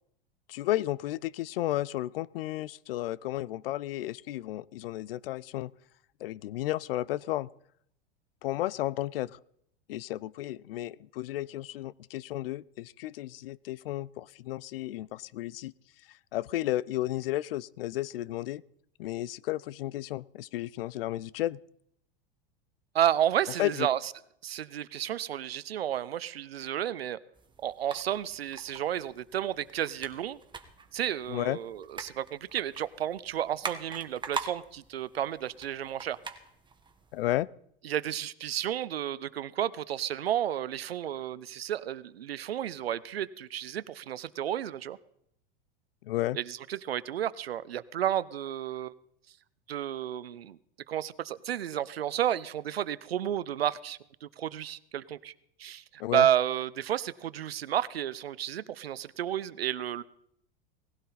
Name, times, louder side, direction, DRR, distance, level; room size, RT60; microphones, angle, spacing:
voice 1, 0.5-5.7 6.2-7.5 8.4-9.4 9.9-15.7 16.1-18.6 19.0-21.6 23.6-23.9 31.3-31.6 37.1-37.5 46.0-46.4 56.0-56.3, left 15 dB, 70° left, 23 dB, 0.5 m, -33 dB
voice 2, 22.9-24.1 24.4-27.2 27.6-30.4 30.9-36.2 37.8-45.0 46.3-48.9 49.7-50.6 50.9-55.3 55.6-60.0, right 10 dB, 85° right, 18 dB, 0.7 m, -31 dB
sound 1, 27.3-37.4, right 4 dB, 15° right, 1.6 m, -44 dB
19.0 x 16.0 x 4.1 m, 0.71 s
hypercardioid pair, 95°, 30 cm